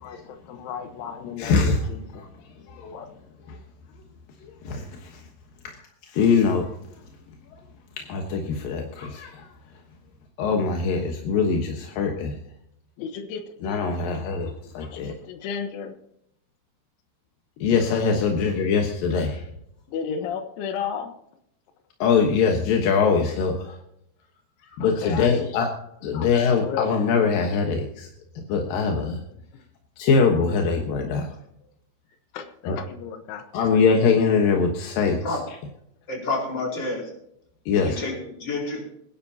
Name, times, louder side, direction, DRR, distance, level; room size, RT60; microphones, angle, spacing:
voice 1, 0.0-2.1 2.8-3.1 13.0-14.2 14.9-16.0 17.7-18.1 19.9-21.1 24.8-25.5 26.1-27.1 32.3-33.8, left 7 dB, 90° left, 7 dB, 3.7 m, -34 dB
voice 2, 1.4-1.8 4.6-4.8 6.1-6.7 8.1-9.5 10.4-12.4 13.6-15.1 17.6-19.4 22.0-23.7 24.8-25.7 26.0-28.1 28.4-29.2 30.0-31.3 32.7-32.8 33.5-35.2 37.7-38.0, left 5 dB, 65° left, 2 dB, 2.5 m, -22 dB
voice 3, 36.1-37.1 37.7-38.8, left 3 dB, 25° left, -1 dB, 4.6 m, -29 dB
26.0 x 10.5 x 2.8 m, 0.76 s
omnidirectional pair, 5.3 m